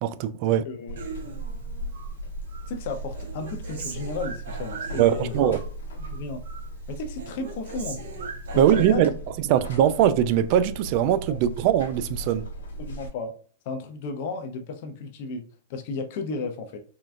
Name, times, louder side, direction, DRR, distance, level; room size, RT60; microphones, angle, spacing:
voice 1, 0.0-0.7 5.0-5.6 8.6-9.1 9.5-12.5, right 10 dB, 50° right, 0.3 m, -21 dB
voice 2, 0.6-1.0 2.7-5.5 6.0-6.4 6.9-8.0 8.5-9.1 11.3-11.4 12.8-13.4 13.6-16.8, left 3 dB, 55° left, 0.5 m, -34 dB
Buzz, 0.9-13.1, right 2 dB, 90° left, 0.9 m, -37 dB
Human voice, 1.0-2.1 2.5-5.7 6.0-6.7 7.0-8.9, right 4 dB, 75° right, 0.9 m, -39 dB
3.6 x 2.2 x 2.5 m
hypercardioid pair, 125°, 0 cm